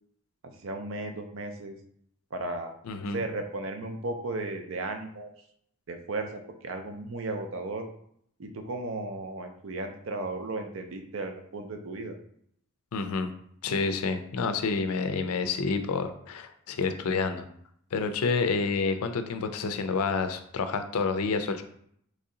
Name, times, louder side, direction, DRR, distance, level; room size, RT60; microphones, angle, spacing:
voice 1, 0.4-1.7 2.3-2.7 3.1-5.3 5.9-7.9 8.4-12.2, right 2 dB, 60° right, 5 dB, 0.5 m, -35 dB
voice 2, 2.8-3.2 12.9-13.3 13.6-17.4 17.9-21.6, left 4 dB, 85° left, 8 dB, 0.4 m, -29 dB
3.1 x 2.7 x 3.8 m, 0.68 s
head